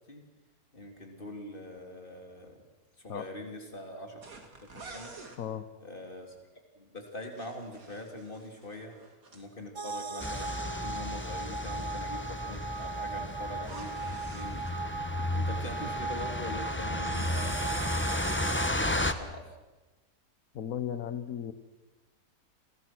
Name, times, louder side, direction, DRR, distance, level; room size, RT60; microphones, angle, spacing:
voice 1, 0.7-2.6 3.0-4.2 4.6-5.2 5.8-6.4 6.8-8.9 9.3-15.1 15.3-19.6, left 1 dB, 35° left, 3 dB, 3.7 m, -43 dB
sound 1, 4.2-5.4 7.1-9.5 13.5-14.8 16.2-18.1 18.4-18.8, right 3 dB, 65° right, 3.1 m, -51 dB
voice 2, 5.4-5.7 20.5-21.5, left 9 dB, 65° left, 10 dB, 1.5 m, -35 dB
sound 2, 9.8-18.7, right 4 dB, 30° right, 0.5 m, -38 dB
sound 3, 10.2-19.1, left 1 dB, 10° left, 0.9 m, -33 dB
29.0 x 21.5 x 6.2 m, 1.2 s
omnidirectional pair, 1.6 m